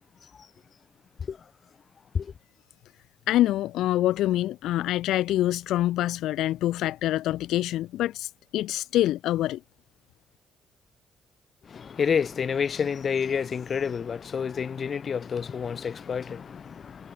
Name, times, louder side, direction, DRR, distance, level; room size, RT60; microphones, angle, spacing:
voice 1, 3.3-9.6, left 14 dB, 85° left, 0.5 m, -25 dB
voice 2, 11.6-17.1, left 6 dB, 50° left, 0.9 m, -29 dB
cardioid pair, 90°, 0 cm